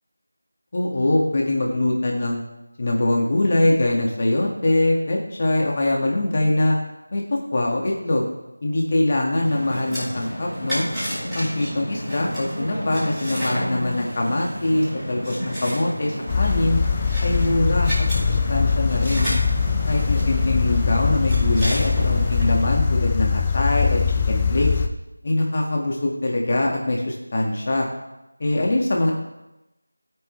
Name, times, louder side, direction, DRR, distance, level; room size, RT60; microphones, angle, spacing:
voice 1, 0.7-2.4 2.8-6.8 7.1-8.3 8.6-10.8 11.3-16.8 17.2-19.3 19.9-24.8 25.2-27.9 28.4-29.1, left 1 dB, 40° left, -1 dB, 1.8 m, -23 dB
sound 1, 9.4-22.7, equal, ahead, 5.1 m, -31 dB
sound 2, 16.3-24.9, left 6 dB, 15° left, 0.6 m, -22 dB
20.0 x 8.9 x 3.3 m, 0.95 s
figure-of-eight pair, 170°, 0 cm